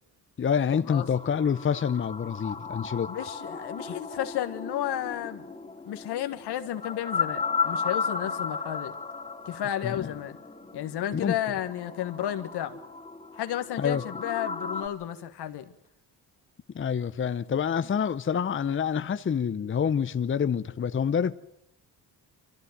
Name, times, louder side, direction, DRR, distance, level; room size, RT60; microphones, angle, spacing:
voice 1, 0.4-3.1 9.8-10.1 11.1-11.4 13.8-14.0 16.7-21.4, left 7 dB, 30° left, 0.7 m, -27 dB
sound 1, 0.9-14.9, left 5 dB, 15° left, 2.5 m, -35 dB
voice 2, 3.1-5.5 5.9-9.0 9.5-10.4 10.7-12.8 13.3-15.6, left 11 dB, 75° left, 1.6 m, -32 dB
24.5 x 14.5 x 9.3 m
supercardioid pair, 70°, 40 cm